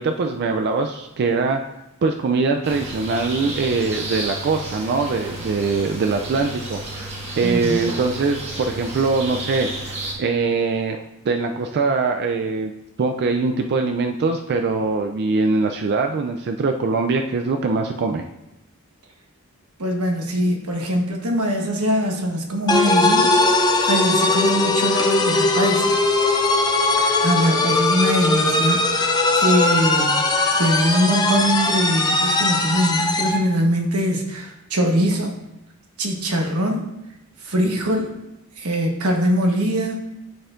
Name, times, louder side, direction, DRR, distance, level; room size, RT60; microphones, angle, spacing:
voice 1, 0.0-1.6 2.0-11.0 11.2-12.7 13.0-18.2, right 4 dB, 50° right, 4 dB, 0.3 m, -22 dB
sound 1, 2.6-10.1, right 1 dB, 30° right, 1.4 m, -32 dB
voice 2, 7.4-7.8 19.8-26.0 27.0-30.1 30.5-35.3 36.0-36.9 37.4-38.1 38.6-40.0, equal, 90° right, 2 dB, 1.1 m, -22 dB
sound 2, 22.7-33.4, left 2 dB, 20° left, 0.5 m, -19 dB
10.5 x 4.3 x 2.5 m, 0.90 s
head